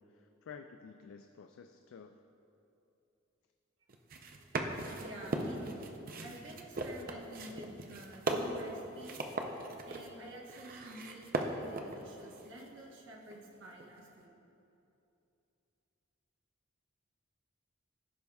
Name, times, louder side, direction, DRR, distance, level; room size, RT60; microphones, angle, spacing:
voice 1, 0.0-2.2, left 6 dB, 75° left, 6 dB, 0.3 m, -52 dB
sound 1, 3.9-12.7 13.3-13.9, right 2 dB, 45° right, 0.5 m, -39 dB
voice 2, 5.0-5.9 6.2-9.3 9.9-14.3, right 1 dB, 65° right, -2 dB, 1.1 m, -49 dB
15.0 x 5.3 x 2.3 m, 2.8 s
head